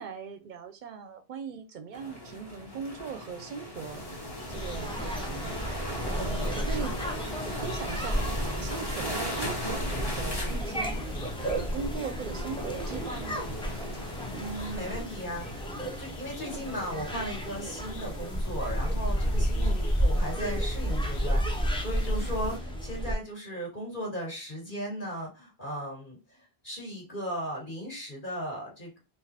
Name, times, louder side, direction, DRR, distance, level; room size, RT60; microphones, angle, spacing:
voice 1, 0.0-4.1 4.5-7.0 7.4-11.1 11.4-13.5 13.7-13.9 19.6-19.9, right 6 dB, 55° right, 0.6 m, -40 dB
sound 1, 1.9-15.0, equal, 25° left, 0.9 m, -38 dB
sound 2, 3.7-22.6, left 3 dB, 85° left, 0.9 m, -46 dB
sound 3, 4.5-23.1, equal, 10° left, 0.3 m, -32 dB
voice 2, 14.3-26.4 26.6-29.0, equal, 55° left, 1.8 m, -37 dB
3.9 x 2.6 x 2.8 m
omnidirectional pair, 1.1 m